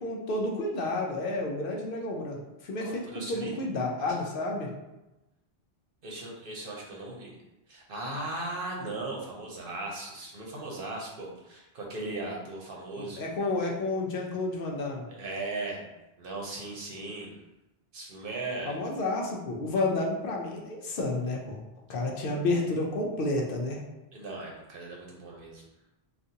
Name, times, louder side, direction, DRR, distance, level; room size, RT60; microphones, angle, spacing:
voice 1, 0.0-2.4 2.6-4.7 12.9-15.0 18.7-21.6 21.9-23.8, left 2 dB, 65° left, -1 dB, 0.7 m, -30 dB
voice 2, 2.8-3.5 6.0-7.3 7.7-13.2 15.1-15.9 16.2-17.4 17.9-18.8 24.1-25.6, right 2 dB, 60° right, -2 dB, 0.9 m, -37 dB
3.8 x 2.5 x 2.7 m, 0.99 s
omnidirectional pair, 1.1 m